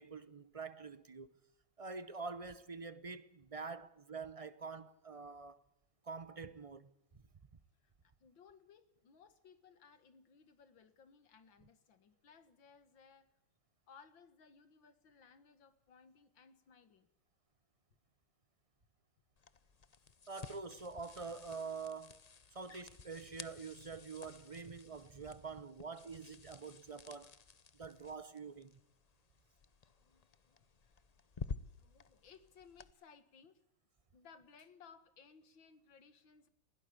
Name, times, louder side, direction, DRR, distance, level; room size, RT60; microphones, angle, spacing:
voice 1, 0.0-1.4 1.8-5.6 6.0-6.9 20.3-22.2 22.5-27.3 27.7-28.8, right 4 dB, 40° right, 0.5 m, -46 dB
voice 2, 7.8-13.3 13.9-17.1 30.0-31.0 31.3-33.6 34.1-36.5, left 6 dB, 80° left, 2.5 m, -62 dB
sound 1, 19.4-32.9, left 5 dB, 60° left, 0.4 m, -52 dB
21.0 x 17.0 x 8.5 m
omnidirectional pair, 2.0 m